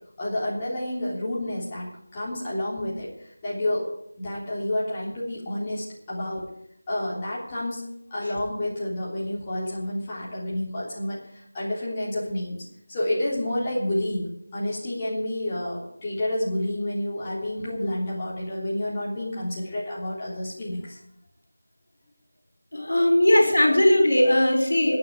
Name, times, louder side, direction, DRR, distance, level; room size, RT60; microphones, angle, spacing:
voice 1, 0.2-3.9 4.2-6.4 6.9-21.0, left 1 dB, 20° left, -7 dB, 3.5 m, -29 dB
voice 2, 22.7-25.0, left 1 dB, 70° left, 4 dB, 4.7 m, -19 dB
10.5 x 9.5 x 9.3 m, 0.75 s
figure-of-eight pair, 170°, 0 cm